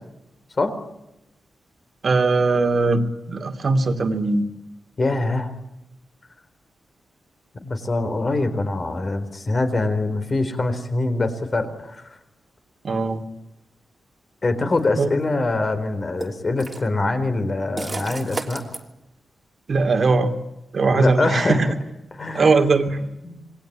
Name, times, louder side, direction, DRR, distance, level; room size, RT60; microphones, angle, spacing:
voice 1, 2.0-3.0 3.3-4.4 12.8-13.2 15.0-15.1 19.7-20.3 20.7-21.7 22.3-23.1, right 3 dB, 45° right, 7 dB, 2.8 m, -19 dB
voice 2, 5.0-5.5 7.6-12.0 14.4-18.6 20.9-21.7 22.1-22.7 23.2-23.4, left 2 dB, 30° left, 9 dB, 4.1 m, -24 dB
sound 1, 14.7-14.8 16.2-16.9 17.8-18.8, right 2 dB, 20° right, 3.2 m, -32 dB
27.5 x 22.0 x 8.9 m, 0.91 s
wide cardioid pair, 145°, 0 cm